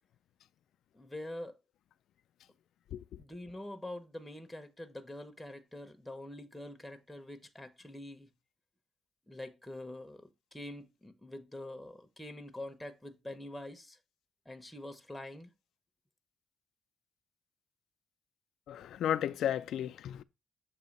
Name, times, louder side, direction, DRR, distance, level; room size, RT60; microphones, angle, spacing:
voice 1, 0.9-1.6 3.2-8.3 9.3-14.0 14.5-15.5, left 1 dB, 5° left, 0.8 m, -45 dB
voice 2, 18.7-20.2, left 10 dB, 85° left, 0.3 m, -33 dB
6.9 x 2.8 x 5.2 m
cardioid pair, 110°, 0 cm